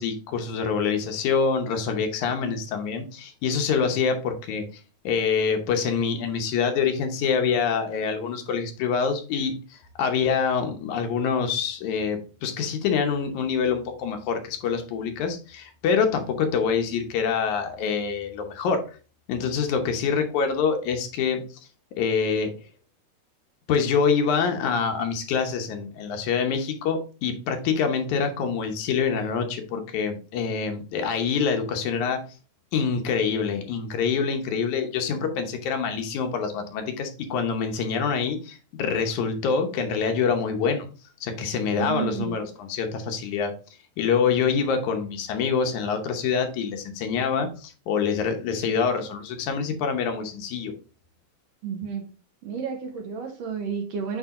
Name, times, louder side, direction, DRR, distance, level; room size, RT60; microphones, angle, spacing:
voice 1, 0.0-4.7 5.0-18.8 19.3-21.4 22.0-22.5 23.7-32.2 32.7-40.9 41.2-43.5 44.0-50.7, left 6 dB, 80° left, 5 dB, 2.4 m, -25 dB
voice 2, 41.7-42.4 51.6-52.0 52.4-54.2, right 7 dB, 65° right, 3 dB, 1.9 m, -31 dB
8.8 x 3.4 x 3.6 m, 0.36 s
omnidirectional pair, 3.5 m